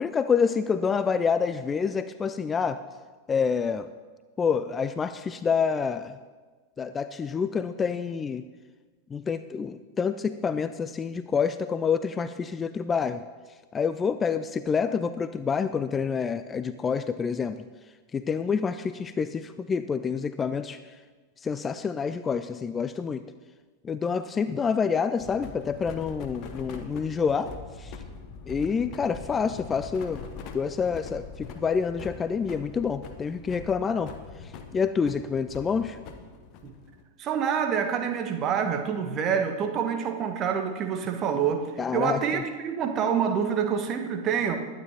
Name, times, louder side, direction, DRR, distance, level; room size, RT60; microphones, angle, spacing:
voice 1, 0.0-2.8 3.3-3.9 4.4-6.2 6.8-8.5 9.1-13.2 13.7-17.7 18.1-20.8 21.4-23.3 23.8-27.5 27.8-27.9 28.5-30.2 30.5-34.1 34.4-36.0 41.8-42.4, left 6 dB, 20° left, 12 dB, 0.4 m, -27 dB
sound 1, 25.2-37.0, left 5 dB, 40° left, 1.2 m, -43 dB
voice 2, 37.2-44.6, right 7 dB, 30° right, 5 dB, 1.3 m, -27 dB
21.0 x 9.6 x 2.9 m, 1.4 s
figure-of-eight pair, 90°, 0 cm